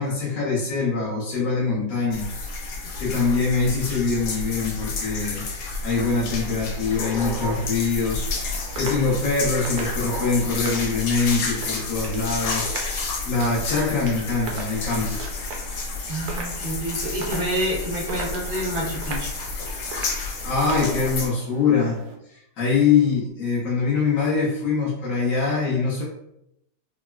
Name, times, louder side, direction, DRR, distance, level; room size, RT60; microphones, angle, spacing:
voice 1, 0.0-2.3 3.0-5.4 5.8-12.7 13.2-15.2 20.1-22.0 22.6-26.0, left 4 dB, 60° left, -7 dB, 0.9 m, -23 dB
sound 1, 2.1-21.3, left 3 dB, 80° left, 1.3 m, -31 dB
sound 2, 6.1-22.1, right 3 dB, 70° right, 1.0 m, -40 dB
voice 2, 16.1-19.3, right 1 dB, 50° right, -4 dB, 0.6 m, -28 dB
3.7 x 2.0 x 2.2 m, 0.78 s
omnidirectional pair, 2.0 m